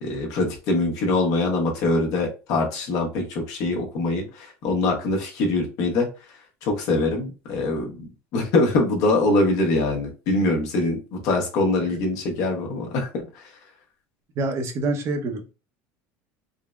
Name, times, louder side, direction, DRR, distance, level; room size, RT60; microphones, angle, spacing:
voice 1, 0.0-6.1 6.6-13.5, left 2 dB, 60° left, 2 dB, 1.0 m, -23 dB
voice 2, 14.4-15.5, right 2 dB, 40° right, 5 dB, 0.7 m, -27 dB
3.7 x 2.1 x 2.3 m, 0.31 s
cardioid pair, 140°, 7 cm